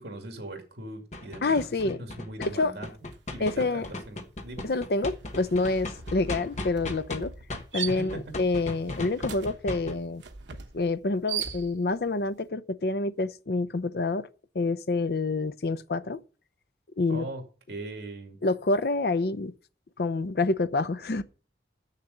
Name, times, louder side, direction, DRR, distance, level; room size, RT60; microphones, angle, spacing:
voice 1, 0.0-2.9 3.3-4.7 7.9-8.2 17.1-17.4 17.7-18.4, right 2 dB, 70° right, 2.3 m, -40 dB
sound 1, 1.1-7.2 7.5-9.9, left 2 dB, 40° left, 1.2 m, -37 dB
voice 2, 1.4-2.0 2.4-2.7 3.4-3.9 4.6-7.3 7.7-10.2 10.7-14.3 14.5-16.2 17.0-17.3 18.4-19.5 20.0-21.2, left 3 dB, 60° left, 0.6 m, -27 dB
sound 2, 3.1-3.3 3.6-12.1, right 7 dB, 85° right, 1.0 m, -40 dB
7.4 x 6.7 x 7.9 m
head